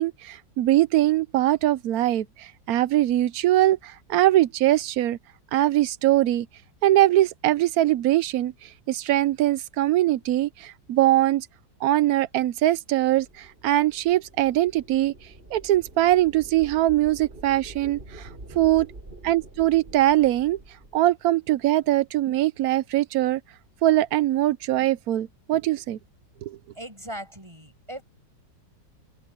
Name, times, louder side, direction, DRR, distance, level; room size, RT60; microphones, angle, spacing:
voice 1, 0.0-5.2 5.5-6.5 6.8-11.5 11.8-15.1 15.5-18.3 18.6-18.9 19.2-20.6 20.9-23.4 23.8-26.0 26.4-26.6, right 14 dB, 70° right, 0.9 m, -22 dB
sound 1, 13.0-21.0, right 2 dB, 30° right, 4.3 m, -46 dB
voice 2, 26.7-28.0, right 1 dB, 15° right, 6.7 m, -39 dB
omnidirectional pair, 2.0 m